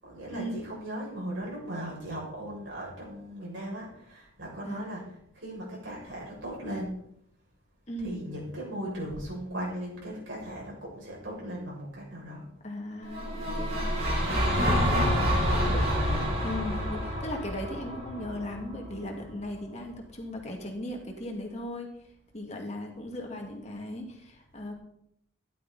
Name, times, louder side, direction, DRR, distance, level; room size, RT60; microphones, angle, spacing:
voice 1, 0.0-6.9 8.0-12.4 14.9-16.3, right 1 dB, 70° right, -4 dB, 6.8 m, -37 dB
voice 2, 12.6-13.9 14.7-15.2 16.4-21.9 22.3-24.7, left 1 dB, 35° left, 1 dB, 2.2 m, -37 dB
sound 1, 13.1-19.2, equal, 50° right, 4.2 m, -28 dB
14.0 x 11.5 x 4.2 m, 0.73 s
head